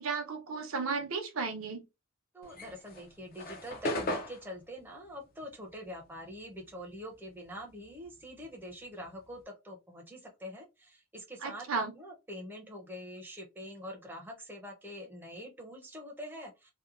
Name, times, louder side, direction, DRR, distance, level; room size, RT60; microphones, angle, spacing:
voice 1, 0.0-1.8 11.4-11.9, right 4 dB, 75° right, 0.7 m, -34 dB
voice 2, 2.3-16.7, equal, 10° right, 0.6 m, -45 dB
sound 1, 2.4-7.1 7.4-9.4, left 1 dB, 45° left, 0.5 m, -39 dB
2.8 x 2.1 x 2.4 m
head